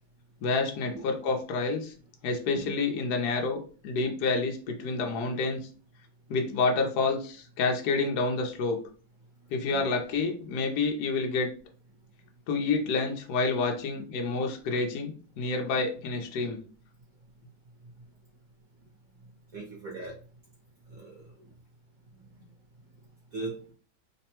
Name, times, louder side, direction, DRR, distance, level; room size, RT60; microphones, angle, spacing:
voice 1, 0.4-1.9 2.2-5.6 6.3-8.8 9.5-11.5 12.5-16.6, left 3 dB, 65° left, 2 dB, 1.1 m, -28 dB
voice 2, 19.5-20.1 20.9-21.5 22.3-22.4 23.3-23.5, right 3 dB, 55° right, -3 dB, 1.2 m, -40 dB
3.3 x 2.1 x 4.3 m, 0.41 s
omnidirectional pair, 2.1 m